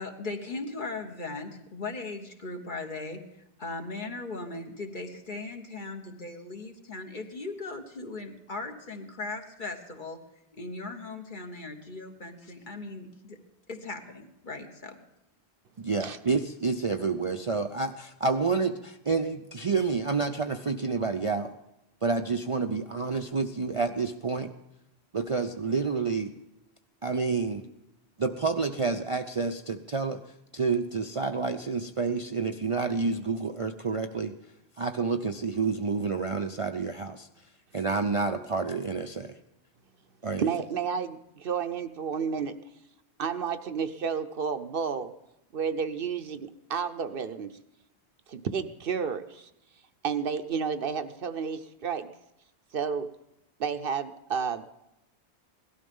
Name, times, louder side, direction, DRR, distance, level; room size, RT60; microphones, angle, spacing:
voice 1, 0.0-3.2 3.6-10.2 10.6-13.4 13.7-15.0, left 3 dB, 50° left, 4 dB, 1.5 m, -38 dB
voice 2, 15.8-21.5 22.0-24.5 25.1-26.3 27.0-27.6 28.2-30.2 30.5-34.3 34.8-37.3 37.7-39.4 40.2-40.5, right 4 dB, 40° right, 5 dB, 0.6 m, -29 dB
voice 3, 40.4-42.6 43.2-45.1 45.5-47.5 48.3-49.5 50.0-52.1 52.7-53.1 53.6-54.7, right 6 dB, 60° right, 10 dB, 0.9 m, -31 dB
17.5 x 12.5 x 5.4 m, 0.88 s
omnidirectional pair, 1.1 m